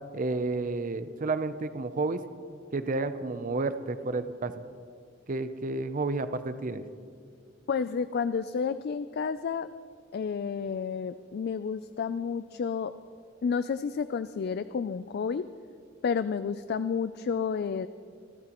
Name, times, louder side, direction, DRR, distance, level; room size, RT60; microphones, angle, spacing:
voice 1, 0.1-2.2 2.7-4.5 5.3-6.8, right 3 dB, 45° right, 11 dB, 0.6 m, -31 dB
voice 2, 7.7-9.7 10.1-12.9 13.4-15.5 16.0-17.9, left 6 dB, 55° left, 13 dB, 0.3 m, -30 dB
27.0 x 13.5 x 3.0 m, 2.2 s
head